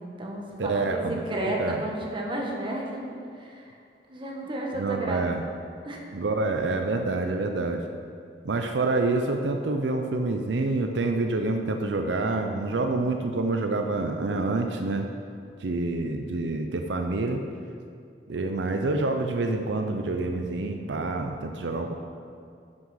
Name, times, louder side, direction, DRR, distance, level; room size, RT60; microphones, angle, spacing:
voice 1, 0.0-3.0 3.4-3.8 4.1-5.3 5.8-6.1, right 1 dB, 30° right, -1 dB, 1.4 m, -32 dB
voice 2, 0.6-1.2 1.6-1.8 4.7-5.4 6.1-7.8 8.4-15.1 15.6-17.4 18.3-21.9, right 3 dB, 85° right, 4 dB, 0.6 m, -27 dB
9.9 x 6.3 x 5.7 m, 2.3 s
head